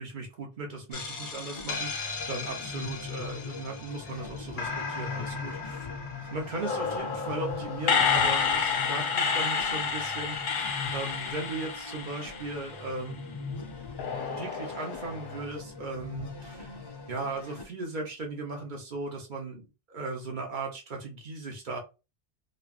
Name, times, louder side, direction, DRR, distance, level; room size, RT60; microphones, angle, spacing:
voice 1, 0.0-5.9 6.3-13.3 14.3-16.7 17.1-21.8, right 3 dB, 50° right, 1 dB, 1.0 m, -37 dB
sound 1, 0.9-4.1 4.6-13.0 14.0-15.4, left 5 dB, 60° left, 0.7 m, -31 dB
sound 2, 0.9-17.7, left 4 dB, 40° left, 0.3 m, -41 dB
3.1 x 2.5 x 2.4 m, 0.29 s
omnidirectional pair, 1.1 m